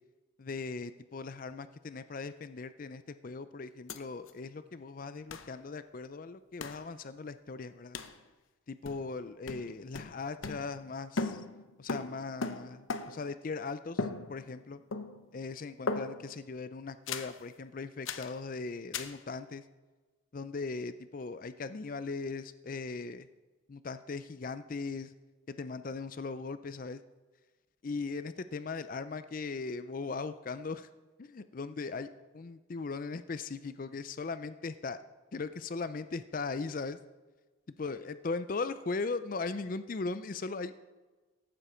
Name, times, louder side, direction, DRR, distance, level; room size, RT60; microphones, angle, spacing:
voice 1, 0.4-8.0 8.7-11.4 11.8-14.8 15.3-19.6 20.3-23.3 23.7-25.1 25.6-27.0 27.8-30.9 31.2-32.1 32.3-35.0 35.3-37.0 37.8-40.8, left 4 dB, 40° left, 12 dB, 0.4 m, -39 dB
sound 1, 3.9-4.0 4.3-4.4 5.3-5.5 6.6-6.9 7.9-8.2 8.8-9.2 9.5-10.9 11.2-13.3 14.0-14.6 14.9-15.4 15.9-16.4 17.1-17.4 18.0-18.4 18.9-19.2, left 3 dB, 80° left, 0.8 m, -38 dB
15.0 x 12.0 x 4.4 m, 1.3 s
head